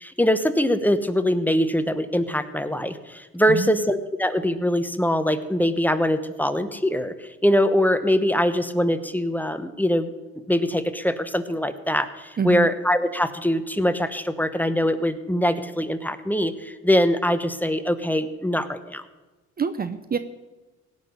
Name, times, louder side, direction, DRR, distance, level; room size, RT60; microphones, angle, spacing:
voice 1, 0.0-7.1 7.4-10.1 10.5-19.0, equal, 5° left, 10 dB, 1.0 m, -23 dB
voice 2, 3.5-3.8 12.4-12.7 19.6-20.2, right 6 dB, 30° right, 12 dB, 0.7 m, -26 dB
17.0 x 6.2 x 9.5 m, 1.2 s
cardioid pair, 90°, 30 cm